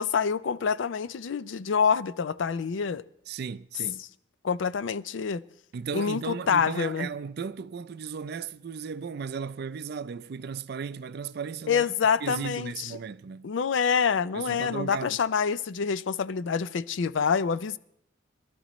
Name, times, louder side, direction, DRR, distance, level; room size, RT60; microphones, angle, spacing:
voice 1, 0.0-3.0 4.4-5.4 5.9-7.1 11.7-12.9 13.4-17.8, left 6 dB, 75° left, 0.4 m, -26 dB
voice 2, 3.3-4.0 5.7-11.9 12.2-13.5 14.3-15.2, right 6 dB, 55° right, 0.4 m, -36 dB
22.0 x 12.5 x 3.0 m
head